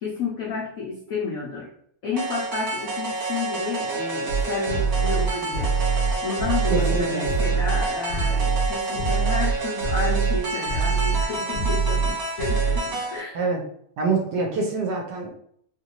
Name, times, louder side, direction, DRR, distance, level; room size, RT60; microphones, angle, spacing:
voice 1, 0.0-1.7 2.0-5.7 6.2-13.4, left 4 dB, 75° left, -3 dB, 0.7 m, -31 dB
sound 1, 2.2-13.2, right 3 dB, 50° right, 1.4 m, -29 dB
sound 2, 4.3-9.5 9.8-10.4 10.7-11.2 11.5-12.1 12.4-12.8, right 5 dB, 55° left, 1.0 m, -23 dB
voice 2, 6.7-7.3 13.3-13.6 14.0-15.3, right 3 dB, 70° right, 1 dB, 1.1 m, -25 dB
3.1 x 2.6 x 2.8 m, 0.65 s
omnidirectional pair, 2.2 m